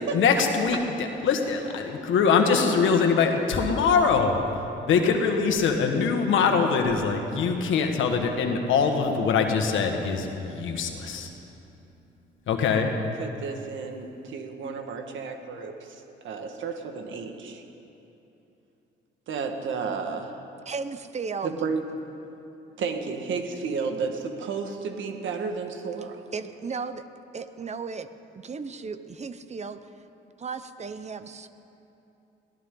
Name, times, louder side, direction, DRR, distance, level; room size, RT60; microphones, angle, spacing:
voice 1, 0.1-4.4 4.9-11.3 12.5-12.9, left 5 dB, 75° left, 4 dB, 1.7 m, -23 dB
voice 2, 13.2-17.6 19.3-20.4 21.4-21.8 22.8-26.2, right 5 dB, 75° right, 5 dB, 1.7 m, -32 dB
voice 3, 20.7-21.6 26.3-27.0 27.3-28.1 28.4-29.9 30.4-31.5, right 5 dB, 35° right, 11 dB, 0.8 m, -35 dB
22.0 x 16.5 x 3.9 m, 2.9 s
cardioid pair, 90°, 20 cm